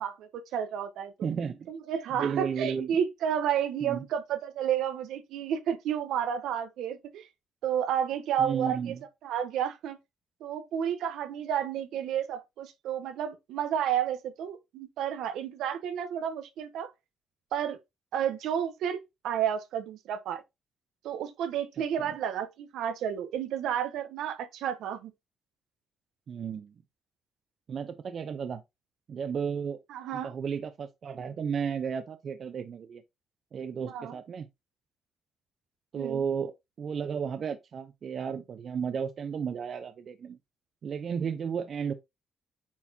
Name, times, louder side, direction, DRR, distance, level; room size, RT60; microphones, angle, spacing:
voice 1, 0.0-1.3 1.7-7.3 7.6-9.0 9.2-10.0 10.4-16.9 17.5-17.8 18.1-19.0 19.2-20.4 21.0-25.1 29.9-30.3 33.9-34.2 35.9-36.2, right 9 dB, 85° right, 1.0 m, -31 dB
voice 2, 1.2-1.7 2.1-2.9 3.8-4.0 8.4-9.0 26.3-26.7 27.7-28.6 29.1-29.8 30.1-33.0 33.5-34.5 35.9-40.4 40.8-41.9, right 7 dB, 55° right, 0.8 m, -33 dB
8.5 x 4.2 x 2.8 m
cardioid pair, 90°, 0 cm